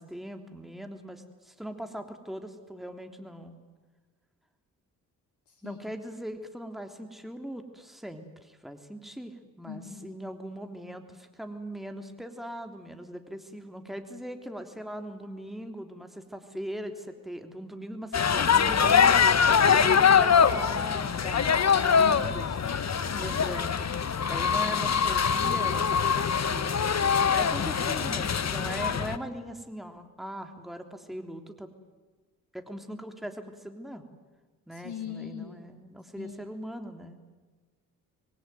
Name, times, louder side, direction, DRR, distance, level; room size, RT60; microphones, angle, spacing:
voice 1, 0.0-3.6 5.6-21.6 21.9-22.8 23.2-23.9 24.3-26.8 27.3-31.7 32.5-34.0 34.7-37.2, equal, ahead, 6 dB, 3.3 m, -40 dB
voice 2, 5.5-5.8 9.7-10.2 22.0-22.5 23.1-23.3 34.7-35.6 36.2-36.4, left 8 dB, 65° left, 3 dB, 3.3 m, -41 dB
sound 1, 18.1-29.2, left 7 dB, 35° left, 1.4 m, -23 dB
26.5 x 22.5 x 9.5 m, 1.3 s
hypercardioid pair, 45°, 44 cm